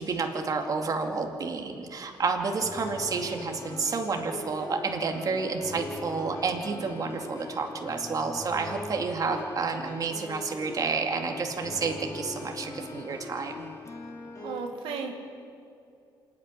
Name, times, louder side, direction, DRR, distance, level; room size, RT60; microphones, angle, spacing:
voice 1, 0.0-13.7, right 4 dB, 45° right, 3 dB, 2.4 m, -30 dB
sound 1, 2.6-14.6, left 2 dB, 40° left, 3.2 m, -41 dB
voice 2, 14.4-15.1, right 5 dB, 90° right, 2 dB, 2.2 m, -34 dB
27.0 x 9.7 x 9.9 m, 2.6 s
cardioid pair, 90°, 9 cm